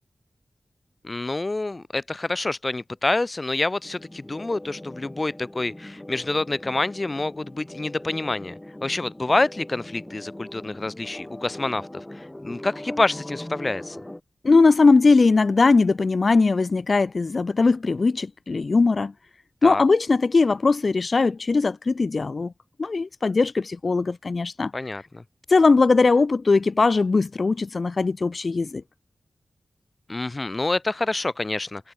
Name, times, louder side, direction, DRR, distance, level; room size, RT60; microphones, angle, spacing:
voice 1, 1.0-11.9 12.1-14.0 19.6-19.8 24.7-25.2 30.1-31.9, left 2 dB, 30° left, 1.6 m, -27 dB
sound 1, 3.8-14.2, left 1 dB, 15° left, 4.7 m, -40 dB
voice 2, 14.4-19.1 19.6-22.5 22.8-24.7 25.5-28.8, left 3 dB, 50° left, 0.9 m, -20 dB
wide cardioid pair, 100°, 0 cm